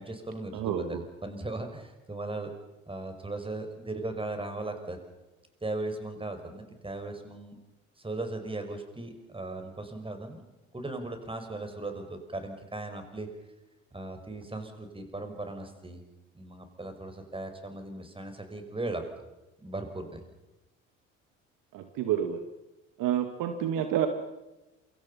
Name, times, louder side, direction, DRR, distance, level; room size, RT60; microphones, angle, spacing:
voice 1, 0.0-2.5 2.9-5.0 5.6-7.6 8.0-10.4 10.7-13.3 13.9-16.0 16.3-19.0 19.6-20.2, right 2 dB, 15° right, 6 dB, 5.9 m, -37 dB
voice 2, 0.5-1.0 21.7-22.4 23.0-24.1, right 10 dB, 55° right, 7 dB, 2.2 m, -29 dB
28.0 x 24.5 x 5.7 m, 1.0 s
hypercardioid pair, 60°, 38 cm